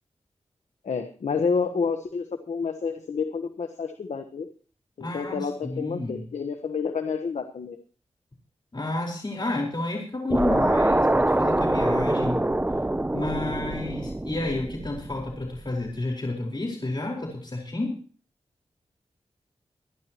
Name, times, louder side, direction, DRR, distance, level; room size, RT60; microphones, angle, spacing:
voice 1, 0.8-4.5 5.0-7.8, left 5 dB, 80° left, 6 dB, 1.2 m, -29 dB
voice 2, 5.0-6.2 8.7-12.4 13.1-18.0, left 2 dB, 40° left, 0 dB, 4.3 m, -30 dB
sound 1, 10.3-15.6, right 1 dB, 15° right, 0.7 m, -24 dB
25.0 x 11.0 x 3.0 m, 0.41 s
cardioid pair, 45°, 12 cm